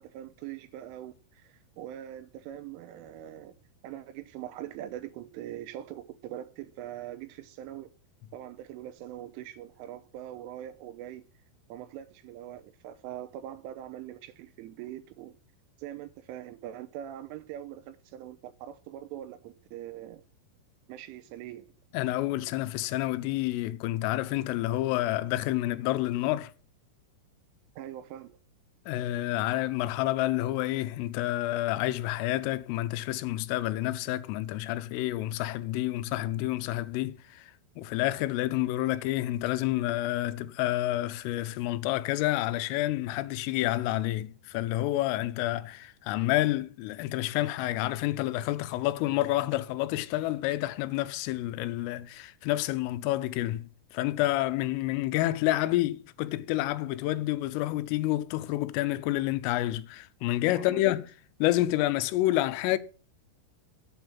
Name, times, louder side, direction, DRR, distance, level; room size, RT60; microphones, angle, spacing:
voice 1, 0.0-7.9 8.3-11.2 11.7-15.4 15.8-20.2 20.9-21.7 27.8-28.4 60.5-60.8, right 12 dB, 85° right, 3.3 m, -42 dB
voice 2, 21.9-26.5 28.9-37.5 37.8-61.1 61.4-62.8, left 16 dB, 90° left, 3.3 m, -29 dB
8.6 x 7.1 x 7.6 m
omnidirectional pair, 5.7 m